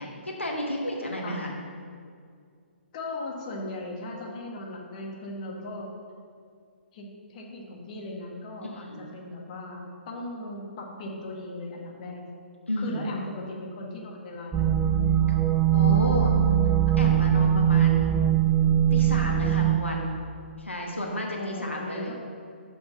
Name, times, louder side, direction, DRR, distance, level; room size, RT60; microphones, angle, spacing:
voice 1, 0.0-1.5 8.7-9.1 12.7-13.0 15.3-15.4 15.7-16.4 17.0-18.2 18.9-20.2 20.6-22.1, left 1 dB, 85° left, -1 dB, 1.4 m, -32 dB
voice 2, 2.9-5.9 6.9-12.3 12.8-14.9 21.4-22.1, left 2 dB, 35° left, -1 dB, 1.4 m, -38 dB
sound 1, 14.5-19.8, right 10 dB, 10° right, 0.3 m, -21 dB
7.1 x 6.1 x 5.6 m, 2.2 s
figure-of-eight pair, 130°, 6 cm